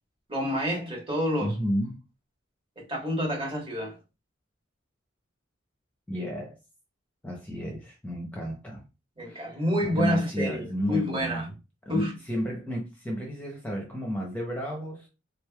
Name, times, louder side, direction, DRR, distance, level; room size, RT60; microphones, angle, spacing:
voice 1, 0.3-1.5 2.8-4.0 9.2-11.5 11.9-12.1, equal, 25° right, 1.3 m, -28 dB
voice 2, 1.4-2.0 6.1-6.6 7.2-8.8 9.2-11.5 11.9-15.1, equal, 10° left, 0.7 m, -32 dB
3.7 x 3.2 x 2.3 m
head